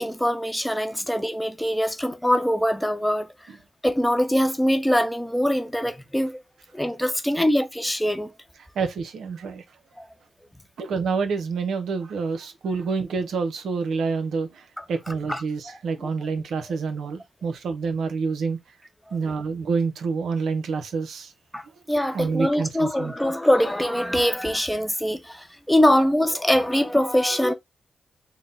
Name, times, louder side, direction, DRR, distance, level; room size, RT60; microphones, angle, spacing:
voice 1, 0.0-3.3 3.8-6.4 6.7-8.3 10.0-10.1 14.8-16.1 19.1-19.2 21.5-27.5, equal, 5° left, 0.8 m, -23 dB
voice 2, 8.8-9.6 10.8-18.6 19.1-21.3 22.1-23.1, right 5 dB, 80° right, 0.6 m, -27 dB
3.9 x 2.1 x 3.7 m
supercardioid pair, 50°, 0 cm